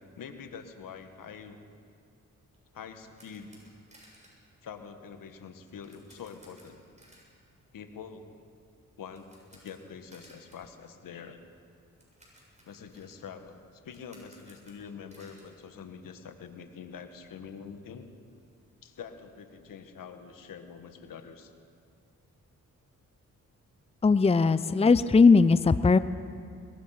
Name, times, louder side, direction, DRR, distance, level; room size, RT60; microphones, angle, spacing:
voice 1, 0.0-1.6 2.7-3.5 4.6-6.8 7.7-8.3 9.0-11.4 12.7-18.1 18.8-21.5, left 6 dB, 85° left, 7 dB, 1.7 m, -45 dB
sound 1, 2.5-16.5 16.7-16.9 17.3-17.4 17.6-19.2, right 1 dB, 20° right, 7.5 m, -61 dB
voice 2, 24.0-26.0, left 4 dB, 20° left, 14 dB, 0.6 m, -19 dB
22.5 x 21.0 x 5.9 m, 2.3 s
cardioid pair, 65°, 32 cm